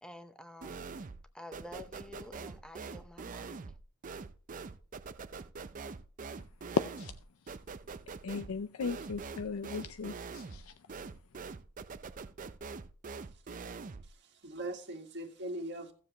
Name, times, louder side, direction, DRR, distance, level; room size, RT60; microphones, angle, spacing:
voice 1, 0.0-0.8 1.3-3.6, left 1 dB, 5° left, 0.8 m, -49 dB
sound 1, 0.6-1.3 1.5-14.1, right 4 dB, 40° right, 0.5 m, -44 dB
voice 2, 8.2-10.7, left 4 dB, 80° left, 0.5 m, -38 dB
voice 3, 14.0-15.9, right 1 dB, 55° right, 1.7 m, -41 dB
16.5 x 7.3 x 2.9 m
head